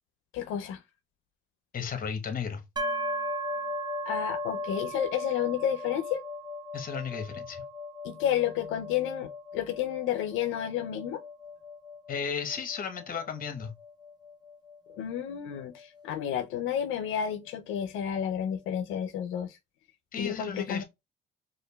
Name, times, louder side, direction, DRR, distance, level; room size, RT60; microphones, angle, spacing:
voice 1, 0.3-0.8 4.1-6.2 8.0-11.2 15.0-19.6 20.2-20.8, left 9 dB, 90° left, 0.4 m, -31 dB
voice 2, 1.7-2.6 6.7-7.6 12.1-13.7 20.1-20.8, left 6 dB, 45° left, 0.9 m, -34 dB
sound 1, 2.8-16.4, left 1 dB, 20° right, 0.7 m, -37 dB
5.0 x 2.4 x 2.2 m
cardioid pair, 90°, 20 cm